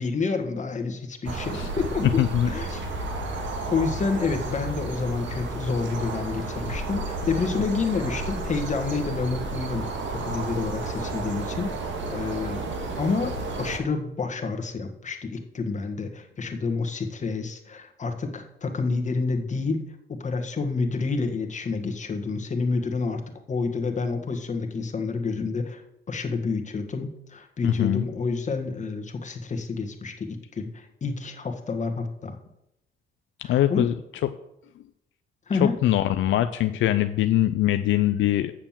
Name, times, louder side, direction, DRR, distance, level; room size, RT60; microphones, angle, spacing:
voice 1, 0.0-2.1 2.5-2.8 3.7-9.9 10.1-12.7 12.9-19.8 20.1-23.2 23.5-32.4 33.4-33.9 35.5-35.8, left 4 dB, 35° left, 5 dB, 1.5 m, -29 dB
sound 1, 1.3-13.8, right 2 dB, 70° right, 1.9 m, -32 dB
voice 2, 2.2-2.5 27.6-28.1 33.4-33.9 35.6-38.5, left 12 dB, 75° left, 9 dB, 0.5 m, -22 dB
7.4 x 6.7 x 7.4 m, 0.83 s
cardioid pair, 90°, 20 cm